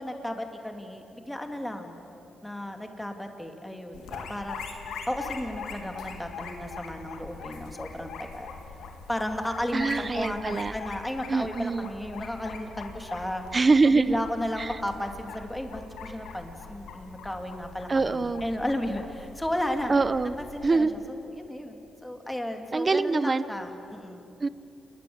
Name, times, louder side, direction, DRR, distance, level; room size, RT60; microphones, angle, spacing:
voice 1, 0.0-2.0 2.4-4.6 5.1-8.5 9.1-13.4 13.9-19.9 20.4-24.3, left 1 dB, 5° left, 4 dB, 3.0 m, -34 dB
sound 1, 3.9-20.8, left 5 dB, 90° left, 2.9 m, -42 dB
voice 2, 9.7-10.7 11.3-11.9 13.5-14.2 14.6-14.8 17.9-18.5 19.9-20.3 20.6-20.9 22.7-23.4 24.4-24.5, right 3 dB, 35° right, 15 dB, 0.8 m, -24 dB
28.0 x 21.5 x 8.2 m, 3.0 s
cardioid pair, 80°, 0 cm